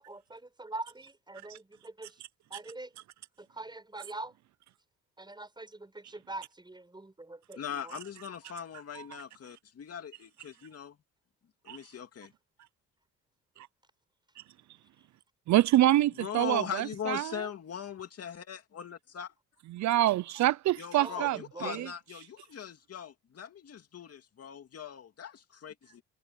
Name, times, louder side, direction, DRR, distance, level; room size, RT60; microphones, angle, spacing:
voice 1, 0.0-2.2 2.5-2.9 3.4-4.3 5.2-8.0 10.6-10.7 21.0-21.9, right 2 dB, 15° right, 6.4 m, -43 dB
voice 2, 7.6-11.0 11.6-12.3 16.2-19.3 20.8-26.0, left 8 dB, 55° left, 2.5 m, -40 dB
voice 3, 15.5-17.3 19.7-21.9, right 14 dB, 65° right, 0.5 m, -26 dB
cardioid pair, 90°, 30 cm